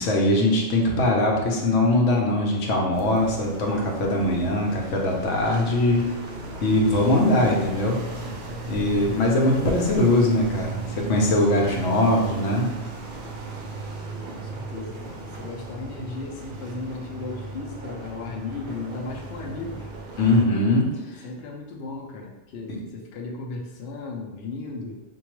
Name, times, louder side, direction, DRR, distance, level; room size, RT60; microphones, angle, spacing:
voice 1, 0.0-6.1 6.6-8.0 8.7-12.7 20.2-20.9 22.7-22.8, left 1 dB, 80° left, 0 dB, 1.0 m, -21 dB
sound 1, 2.9-20.5, right 2 dB, 60° right, 0.6 m, -36 dB
voice 2, 14.2-19.9 21.0-25.0, left 3 dB, 65° left, 0 dB, 0.7 m, -36 dB
4.4 x 2.3 x 3.0 m, 1.1 s
omnidirectional pair, 1.3 m